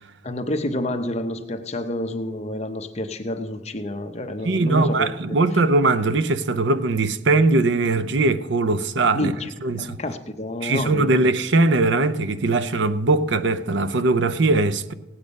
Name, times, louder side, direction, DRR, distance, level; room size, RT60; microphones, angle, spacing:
voice 1, 0.2-5.1 9.1-11.3, left 1 dB, 35° left, 0.8 m, -29 dB
voice 2, 4.4-9.3 9.6-10.0 10.6-14.9, right 2 dB, 70° right, 0.6 m, -20 dB
17.5 x 8.6 x 5.3 m
head